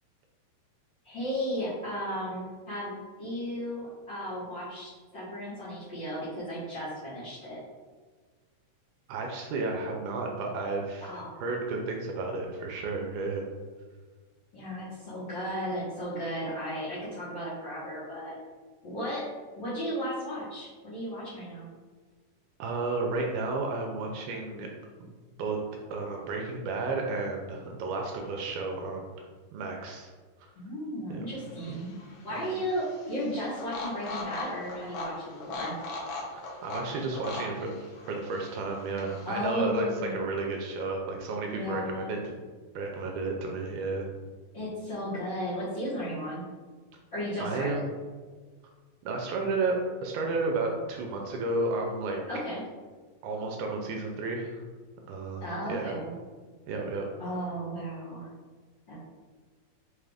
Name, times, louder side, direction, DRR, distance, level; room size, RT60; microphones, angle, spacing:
voice 1, 1.0-7.6 11.0-11.4 14.5-18.4 18.8-19.2 19.6-21.7 30.5-31.9 32.2-35.7 39.2-40.2 41.5-42.1 44.5-46.4 47.1-47.8 52.3-52.6 55.4-56.1 57.2-58.3 58.9-59.0, equal, 55° left, -12 dB, 1.3 m, -35 dB
voice 2, 9.1-11.1 11.4-13.4 22.6-24.7 25.4-25.6 25.9-29.3 29.5-30.1 31.1-31.3 32.3-32.6 36.6-42.2 42.8-44.1 47.4-47.9 49.0-52.2 53.2-54.6 55.1-56.0 56.7-57.3, right 3 dB, 80° right, 1 dB, 1.9 m, -32 dB
sound 1, 31.3-39.5, left 2 dB, 75° left, 2.0 m, -40 dB
5.6 x 2.4 x 3.4 m, 1.4 s
omnidirectional pair, 3.8 m